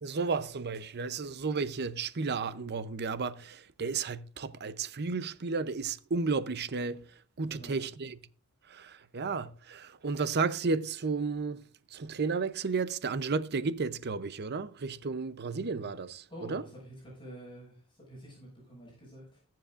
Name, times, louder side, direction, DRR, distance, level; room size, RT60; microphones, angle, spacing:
voice 1, 0.0-8.2 8.7-11.6 11.9-16.6, right 4 dB, 50° right, 0.7 m, -33 dB
voice 2, 16.3-19.4, equal, 20° left, 6.4 m, -48 dB
21.0 x 7.6 x 2.5 m
head